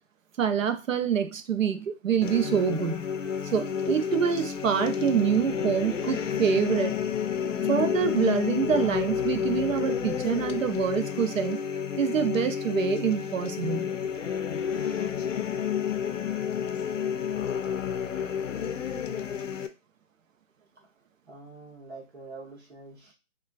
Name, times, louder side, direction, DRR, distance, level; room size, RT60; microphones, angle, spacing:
voice 1, 0.4-3.1 3.5-7.0 7.7-11.6 12.0-13.9, right 7 dB, 80° right, 9 dB, 0.6 m, -26 dB
sound 1, 2.2-19.7, left 8 dB, 70° left, 0.5 m, -30 dB
voice 2, 20.6-20.9 21.3-23.1, right 3 dB, 55° right, -2 dB, 0.9 m, -46 dB
3.1 x 2.2 x 2.3 m, 0.29 s
hypercardioid pair, 175°, 39 cm